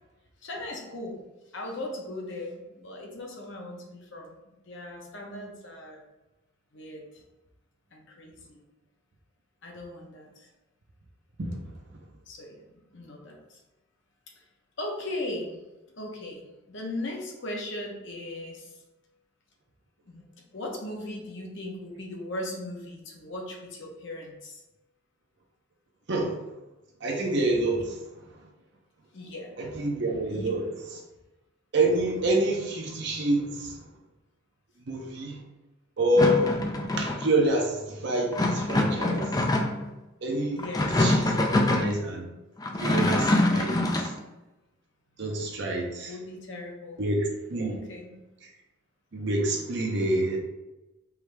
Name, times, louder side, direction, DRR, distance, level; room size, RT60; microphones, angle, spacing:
voice 1, 0.4-1.2 1.5-4.4 4.7-6.0 6.7-7.0 7.9-8.6 9.6-10.5 12.3-13.6 14.4-14.5 14.8-15.6 16.0-18.8 20.1-20.3 20.5-24.6 29.1-29.5 30.3-30.5 40.5-40.9 46.1-47.0 47.7-48.1, left 1 dB, 55° left, 0 dB, 0.9 m, -38 dB
voice 2, 27.0-27.8 29.6-30.6 31.7-33.8 34.9-35.4 36.0-36.5 37.0-39.2 40.2-40.6 41.0-41.3 41.7-42.3 42.8-44.1 45.2-46.1 47.0-47.7 48.4-48.5 49.1-50.4, right 1 dB, 55° right, 0 dB, 0.6 m, -27 dB
sound 1, 36.2-37.3 38.3-39.9 40.6-41.9 42.6-44.1, left 1 dB, 15° left, 0.3 m, -24 dB
4.7 x 2.7 x 3.3 m, 1.0 s
head